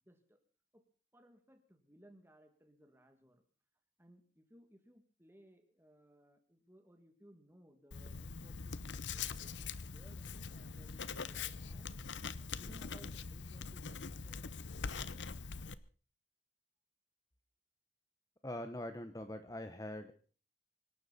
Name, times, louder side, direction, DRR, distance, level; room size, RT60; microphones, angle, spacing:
voice 1, 0.0-0.4 0.7-0.8 1.1-3.4 4.0-11.9 12.6-14.4, equal, 15° right, 5 dB, 2.4 m, -63 dB
Writing, 7.9-15.7, left 5 dB, 85° left, 0.9 m, -43 dB
voice 2, 18.4-20.1, left 1 dB, 20° left, 8 dB, 0.9 m, -43 dB
25.0 x 12.0 x 4.2 m, 0.40 s
head